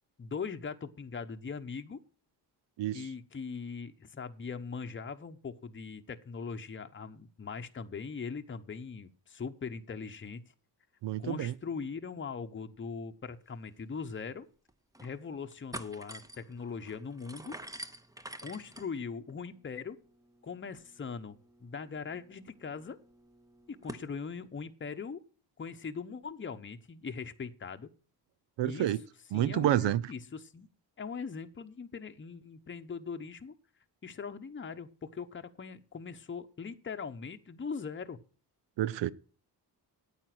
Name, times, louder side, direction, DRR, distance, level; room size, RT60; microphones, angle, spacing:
voice 1, 0.2-2.0 2.9-10.4 11.2-14.5 15.0-17.6 18.4-20.0 20.4-21.4 21.6-23.0 23.7-25.2 25.6-27.9 28.6-28.9 29.3-30.7 31.0-33.5 34.0-38.2, left 5 dB, 30° left, 0.9 m, -40 dB
voice 2, 11.0-11.5 28.6-29.0 29.3-30.0 38.8-39.1, right 12 dB, 85° right, 0.6 m, -29 dB
sound 1, 13.7-13.8 14.1-14.2 14.7-15.1 15.4-24.1, right 1 dB, 10° right, 0.7 m, -49 dB
9.2 x 9.0 x 6.0 m
cardioid pair, 85°, 42 cm